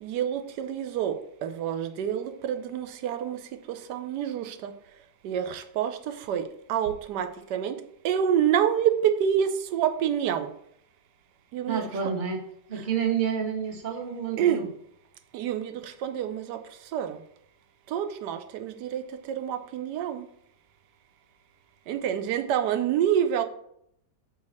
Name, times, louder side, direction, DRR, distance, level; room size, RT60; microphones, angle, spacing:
voice 1, 0.0-3.4 3.9-4.7 5.2-6.0 6.3-6.4 6.7-7.7 8.0-10.5 11.5-11.8 14.4-14.6 15.3-16.6 16.9-17.2 17.9-20.2 21.9-23.4, right 9 dB, 75° right, 9 dB, 1.3 m, -27 dB
voice 2, 11.7-12.4 12.7-14.7, right 7 dB, 30° right, 1 dB, 1.4 m, -29 dB
5.4 x 4.8 x 6.4 m, 0.71 s
omnidirectional pair, 1.9 m